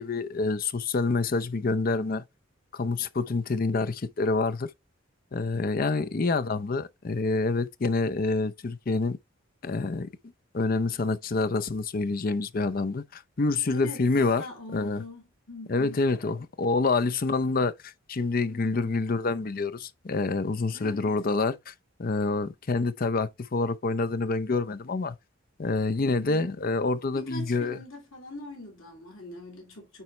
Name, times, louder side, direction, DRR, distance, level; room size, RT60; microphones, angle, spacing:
voice 1, 0.0-2.2 2.7-4.7 5.3-9.2 9.6-10.1 10.5-14.5 14.7-15.0 15.7-21.7 22.0-25.2 25.6-27.8, left 3 dB, 45° left, 0.5 m, -27 dB
voice 2, 13.6-16.0 18.5-19.0 20.7-21.1 26.0-26.5 27.1-30.0, left 1 dB, 80° left, 2.9 m, -42 dB
9.1 x 4.2 x 3.2 m
head